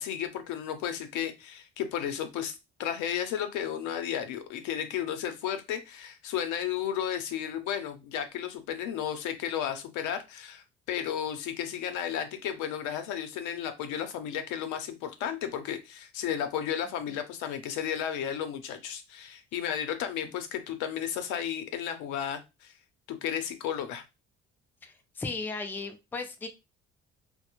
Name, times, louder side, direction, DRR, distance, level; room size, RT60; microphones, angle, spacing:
voice 1, 0.0-2.5 2.8-22.7 23.1-24.0, left 9 dB, 85° left, 0.6 m, -33 dB
voice 2, 24.8-26.5, left 3 dB, 5° left, 0.3 m, -36 dB
2.3 x 2.0 x 2.9 m
cardioid pair, 100°, 29 cm